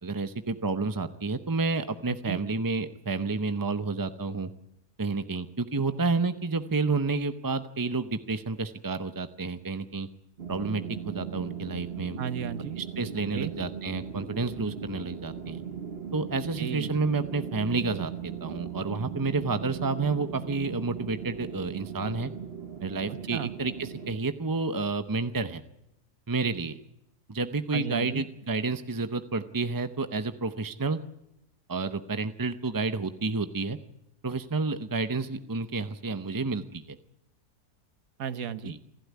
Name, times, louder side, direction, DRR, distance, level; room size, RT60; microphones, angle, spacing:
voice 1, 0.0-4.5 5.0-10.1 10.5-12.2 12.8-15.6 16.1-22.3 22.8-25.6 26.3-26.8 27.3-31.0 31.7-33.8 34.2-37.0 38.6-38.8, right 3 dB, 30° right, 10 dB, 0.4 m, -30 dB
voice 2, 2.1-2.4 12.2-12.8 13.3-13.5 16.6-16.9 23.1-23.5 27.7-28.2 38.2-38.7, right 8 dB, 65° right, 13 dB, 1.4 m, -34 dB
sound 1, 10.4-24.2, right 8 dB, 45° right, 1.1 m, -38 dB
28.5 x 12.0 x 9.5 m, 0.86 s
omnidirectional pair, 1.7 m